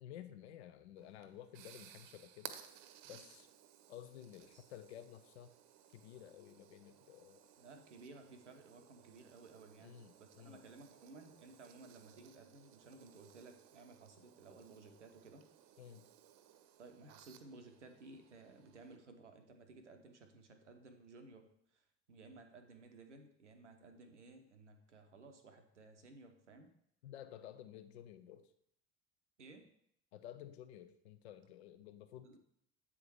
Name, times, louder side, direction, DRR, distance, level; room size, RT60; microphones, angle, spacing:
voice 1, 0.0-2.6 3.1-3.5 3.9-5.5 5.9-7.4 9.8-10.6 15.8-16.1 27.0-28.5 30.1-32.4, left 10 dB, 70° left, 10 dB, 0.5 m, -53 dB
sound 1, 1.0-19.0, right 11 dB, 50° right, 0.7 m, -59 dB
voice 2, 7.6-15.4 16.8-26.7 29.4-29.7 32.2-32.4, right 3 dB, 85° right, 6 dB, 0.6 m, -57 dB
8.4 x 3.6 x 4.6 m, 0.72 s
figure-of-eight pair, 60°, 35 cm